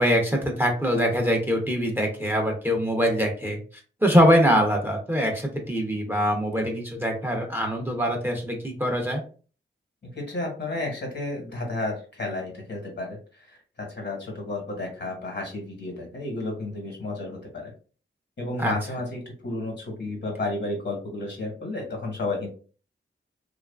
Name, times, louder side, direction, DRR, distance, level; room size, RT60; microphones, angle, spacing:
voice 1, 0.0-3.6 4.0-9.2 18.6-18.7, equal, 10° right, 1 dB, 0.7 m, -23 dB
voice 2, 10.0-17.7 18.4-22.5, left 2 dB, 60° left, 0 dB, 1.3 m, -32 dB
2.9 x 2.4 x 2.3 m, 0.38 s
wide cardioid pair, 70°, 20 cm